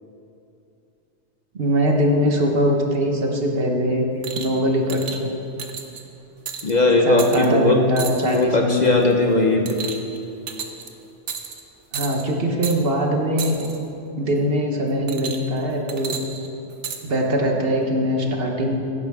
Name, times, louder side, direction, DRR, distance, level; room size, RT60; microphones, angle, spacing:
voice 1, 1.5-4.1 4.3-5.3 7.0-9.0 11.9-13.6 14.2-16.2 17.0-18.8, equal, 55° right, 1 dB, 1.4 m, -22 dB
sound 1, 4.2-4.6 4.9-5.2 5.6-6.0 6.5-6.7 7.2-7.5 8.0-8.4 8.8-9.1 9.7-10.2 10.5-10.9 11.3-11.6 11.9-12.2 12.6-12.8 13.4-13.8 15.1-15.6 15.9-17.0 17.8-17.9, right 6 dB, 80° right, 1.2 m, -32 dB
voice 2, 6.6-7.8 8.2-9.8, left 2 dB, 40° left, 2 dB, 0.8 m, -18 dB
16.0 x 10.5 x 3.6 m, 2.8 s
omnidirectional pair, 1.2 m